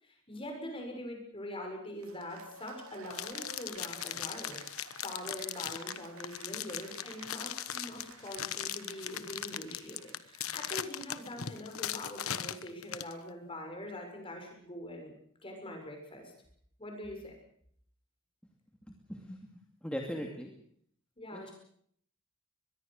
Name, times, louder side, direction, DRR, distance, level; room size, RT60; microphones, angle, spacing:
voice 1, 0.0-4.6 5.0-15.1 15.4-16.3 16.8-17.3 21.2-21.5, left 1 dB, 25° left, 3 dB, 6.7 m, -43 dB
Cheering / Applause, 2.0-11.5, right 5 dB, 85° right, 2.4 m, -54 dB
sound 1, 3.1-13.1, left 10 dB, 90° left, 1.2 m, -39 dB
voice 2, 18.9-20.5 21.3-21.5, equal, 5° left, 1 dB, 2.4 m, -40 dB
23.5 x 21.5 x 6.6 m, 0.65 s
head